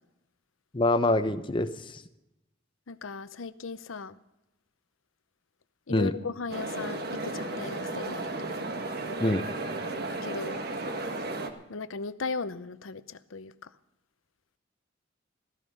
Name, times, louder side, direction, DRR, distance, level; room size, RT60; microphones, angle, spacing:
voice 1, 0.7-2.0 5.9-6.1 9.2-9.4, left 2 dB, 25° left, 11 dB, 0.7 m, -25 dB
voice 2, 2.9-4.2 5.9-8.2 10.2-10.6 11.7-13.7, left 4 dB, 90° left, 14 dB, 0.7 m, -37 dB
sound 1, 6.5-11.5, right 2 dB, 50° right, 1.5 m, -34 dB
14.5 x 14.0 x 5.4 m, 0.93 s
head